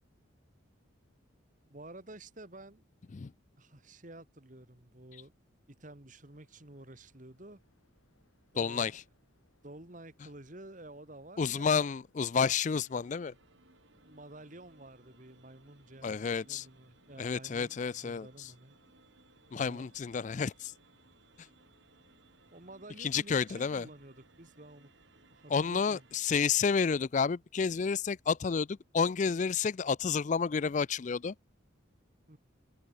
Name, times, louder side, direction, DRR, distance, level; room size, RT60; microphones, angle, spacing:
voice 1, 1.7-2.8 3.6-5.3 5.7-7.6 8.5-8.9 9.6-11.9 14.0-18.8 19.5-19.9 22.5-24.9 25.3-26.0 32.3-32.4, right 1 dB, 40° right, 2.0 m, -51 dB
sound 1, 6.2-23.6, left 2 dB, 85° left, 8.0 m, -75 dB
voice 2, 8.6-9.0 11.4-13.3 16.0-16.7 17.2-18.5 19.5-20.7 23.0-23.9 25.5-31.3, left 6 dB, 35° left, 0.3 m, -30 dB
sound 2, 12.8-26.2, right 3 dB, 65° right, 4.4 m, -64 dB
head